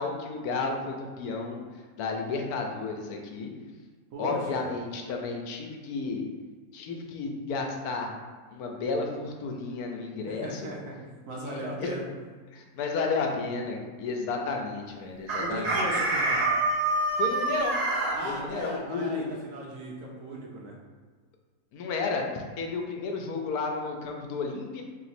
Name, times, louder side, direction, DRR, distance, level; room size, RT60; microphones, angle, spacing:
voice 1, 0.0-1.6 2.0-3.5 4.2-6.2 6.7-8.1 8.5-10.7 11.5-12.0 12.5-15.8 17.2-17.8 18.2-19.2 21.7-24.8, left 4 dB, 75° left, 2 dB, 1.1 m, -32 dB
voice 2, 4.1-4.7 10.2-11.0 11.3-12.1 15.4-16.4 18.1-20.8, right 1 dB, 65° right, -2 dB, 1.0 m, -37 dB
Chicken rooster, 15.3-18.2, right 2 dB, 80° right, 1.3 m, -26 dB
3.1 x 2.9 x 4.2 m, 1.5 s
omnidirectional pair, 1.6 m